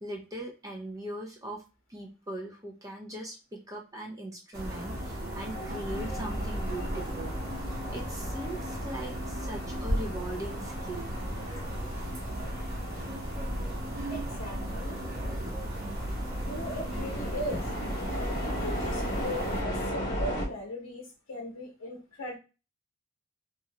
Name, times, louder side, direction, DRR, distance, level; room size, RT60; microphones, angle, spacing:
voice 1, 0.0-1.6 1.9-7.3 7.9-11.1, right 1 dB, 15° right, 0 dB, 0.4 m, -40 dB
sound 1, 4.5-19.6, equal, 50° right, 1.1 m, -36 dB
sound 2, 5.9-20.5, equal, 40° left, 1.1 m, -36 dB
voice 2, 14.1-15.0 16.4-17.7 18.0-22.4, left 1 dB, 85° left, -1 dB, 0.7 m, -39 dB
2.7 x 2.4 x 2.9 m, 0.31 s
head